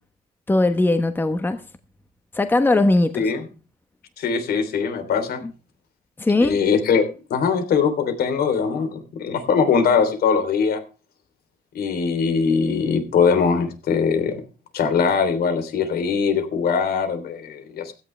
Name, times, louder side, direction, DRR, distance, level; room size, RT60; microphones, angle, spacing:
voice 1, 0.5-1.6 2.3-3.3 6.2-6.6, left 2 dB, 10° left, 1.1 m, -19 dB
voice 2, 4.2-5.4 6.4-7.0 7.3-10.8 11.7-14.4 14.7-17.9, left 6 dB, 70° left, 3.3 m, -21 dB
16.5 x 14.0 x 3.3 m
cardioid pair, 155°, 16 cm